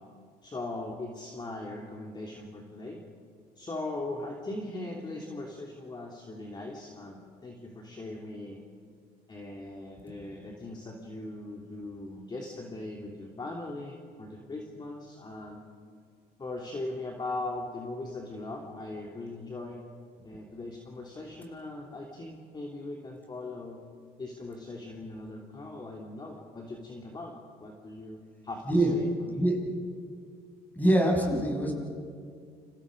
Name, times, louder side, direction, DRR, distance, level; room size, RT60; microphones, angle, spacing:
voice 1, 0.4-3.0 3.5-8.6 9.3-15.6 16.4-19.8 20.2-23.8 24.2-27.3 27.6-29.4, left 2 dB, 25° left, 0 dB, 3.1 m, -39 dB
voice 2, 30.8-31.7, right 1 dB, 10° left, -1 dB, 7.2 m, -24 dB
29.5 x 28.5 x 5.3 m, 2.2 s
cardioid pair, 110°, 17 cm